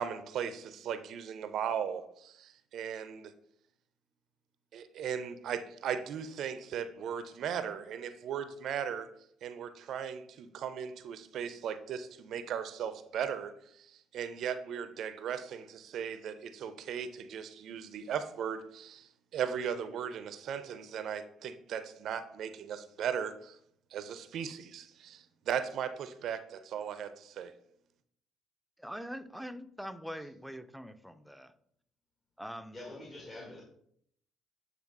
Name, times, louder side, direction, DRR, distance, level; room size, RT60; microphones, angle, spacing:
voice 1, 0.0-3.3 4.7-9.1 9.4-23.6 23.9-27.5, right 8 dB, 65° right, 12 dB, 0.5 m, -37 dB
voice 2, 28.8-31.5 32.4-32.9, equal, ahead, 10 dB, 0.5 m, -43 dB
voice 3, 32.7-33.6, left 2 dB, 35° left, -2 dB, 1.6 m, -46 dB
8.4 x 3.4 x 3.6 m, 0.68 s
hypercardioid pair, 55°, 0 cm